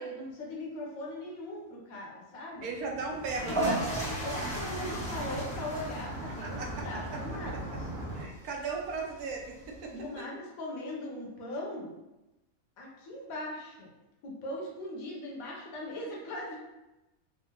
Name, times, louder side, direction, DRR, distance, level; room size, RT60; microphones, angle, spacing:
voice 1, 0.0-2.7 4.2-7.9 9.9-11.9 12.8-13.9 14.2-16.6, left 1 dB, 70° left, -2 dB, 1.2 m, -39 dB
sound 1, 2.6-8.2, right 1 dB, 45° right, 1.2 m, -40 dB
voice 2, 2.6-3.8 6.4-6.9 7.1-7.2 8.1-10.2, right 3 dB, 75° right, 0 dB, 1.0 m, -37 dB
sound 2, 3.2-10.0, right 1 dB, 10° left, 0.4 m, -37 dB
3.6 x 2.0 x 2.8 m, 0.99 s
omnidirectional pair, 1.6 m